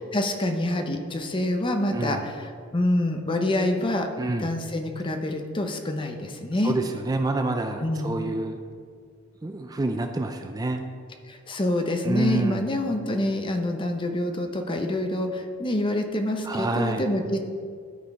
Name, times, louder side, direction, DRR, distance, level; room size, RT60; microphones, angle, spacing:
voice 1, 0.0-4.1 4.4-6.7 7.8-8.1 11.3-17.4, left 1 dB, 25° left, 5 dB, 0.7 m, -26 dB
voice 2, 1.9-2.2 4.2-4.5 6.6-8.6 9.4-10.8 12.0-12.6 16.4-17.0, right 2 dB, 20° right, 5 dB, 0.4 m, -27 dB
12.5 x 4.4 x 4.7 m, 2.1 s
head